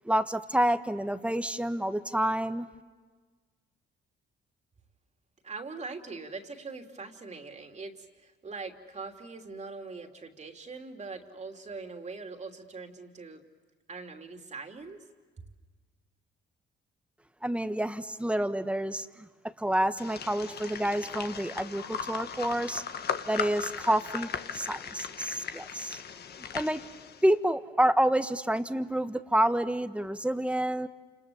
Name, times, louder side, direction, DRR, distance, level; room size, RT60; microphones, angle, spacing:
voice 1, 0.0-2.7 17.4-19.3 19.6-22.8 23.3-26.0 26.5-26.8 27.2-30.9, right 1 dB, 5° right, 10 dB, 1.3 m, -28 dB
voice 2, 5.4-13.4 13.9-15.0 15.4-15.5, right 4 dB, 35° right, 4 dB, 3.1 m, -42 dB
sound 1, 20.0-27.3, left 7 dB, 55° left, 1.5 m, -38 dB
29.5 x 27.5 x 7.1 m, 1.4 s
cardioid pair, 90°, 20 cm